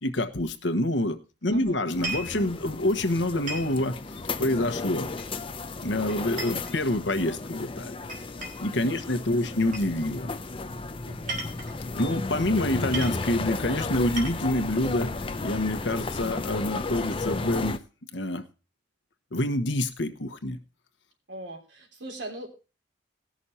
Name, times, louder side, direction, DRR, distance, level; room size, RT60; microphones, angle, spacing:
voice 1, 0.0-3.9 4.4-5.1 5.8-7.9 8.6-10.3 12.0-15.1 15.4-17.8 18.1-18.4 19.3-20.6, left 1 dB, 85° left, 9 dB, 1.2 m, -27 dB
voice 2, 1.5-1.8 8.9-9.5 11.0-11.4 21.3-22.5, right 1 dB, 75° right, 1 dB, 3.3 m, -41 dB
sound 1, 1.9-17.8, left 3 dB, 30° left, 0.7 m, -34 dB
sound 2, 1.9-2.4 3.5-3.8 5.2-5.6 6.1-7.3 8.1-8.7 9.7-9.9 11.1-11.8 12.6-12.7 12.9-13.2 13.9-14.6, right 3 dB, 45° right, 2.9 m, -36 dB
18.5 x 6.3 x 4.2 m, 0.32 s
head